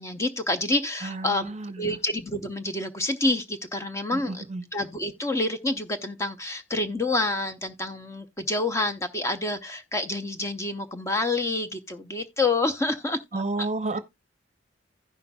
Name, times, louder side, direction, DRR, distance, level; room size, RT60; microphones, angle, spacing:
voice 1, 0.0-4.4 4.7-13.7, left 2 dB, 15° left, 0.6 m, -28 dB
voice 2, 1.0-2.0 4.1-4.7 13.3-14.0, right 2 dB, 35° right, 0.7 m, -31 dB
16.0 x 5.6 x 2.2 m
head